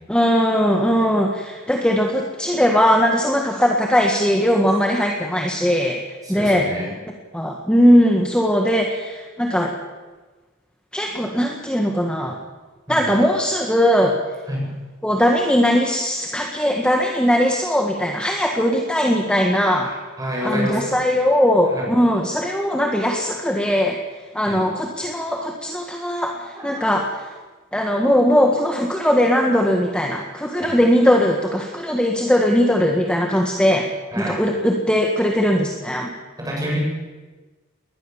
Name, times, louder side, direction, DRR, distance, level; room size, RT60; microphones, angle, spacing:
voice 1, 0.1-6.0 6.3-6.7 7.3-9.7 10.9-12.4 12.9-14.2 15.0-19.9 20.4-24.0 24.3-27.1 27.7-33.9 34.2-36.1, equal, 5° left, 1 dB, 1.8 m, -19 dB
voice 2, 6.2-6.9 12.9-13.1 14.5-14.7 19.8-20.9 21.7-21.9 24.5-24.6 26.5-26.9 30.6-30.7 34.1-34.4 36.4-36.9, equal, 20° right, -1 dB, 8.0 m, -28 dB
21.5 x 19.5 x 7.3 m, 1.3 s
head